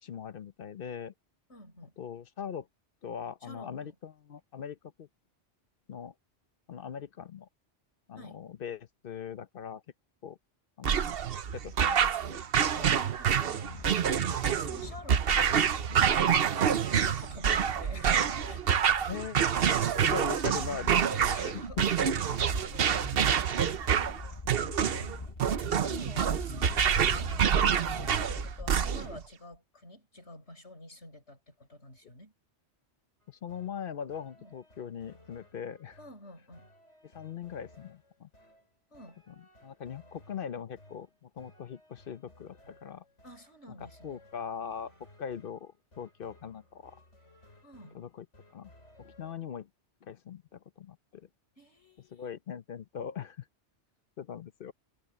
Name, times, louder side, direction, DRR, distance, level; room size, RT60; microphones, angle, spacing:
voice 1, 0.0-1.1 2.0-2.7 3.0-5.1 5.9-6.1 6.7-7.5 8.1-9.8 10.2-10.4 10.8-11.1 11.5-12.4 14.8-14.9 19.1-21.8 33.3-36.0 37.1-38.3 39.3-39.4 39.6-43.0 44.0-44.9 45.2-47.0 47.9-48.3 48.5-48.7 49.0-49.7 50.0-51.3 52.1-53.4 54.2-54.7, left 7 dB, 55° left, 0.9 m, -41 dB
voice 2, 1.5-1.9 3.4-3.9 8.2-8.4 12.7-18.8 21.0-25.3 25.9-32.3 34.4-34.5 36.0-36.7 38.9-39.2 43.2-44.2 47.6-48.0 51.6-52.3, left 1 dB, 75° left, 6.9 m, -50 dB
sound 1, 10.8-29.2, right 8 dB, 60° right, 1.0 m, -27 dB
sound 2, 13.6-29.0, left 3 dB, 30° left, 1.0 m, -44 dB
sound 3, 33.2-49.3, left 1 dB, 90° left, 5.4 m, -59 dB
omnidirectional pair, 1.2 m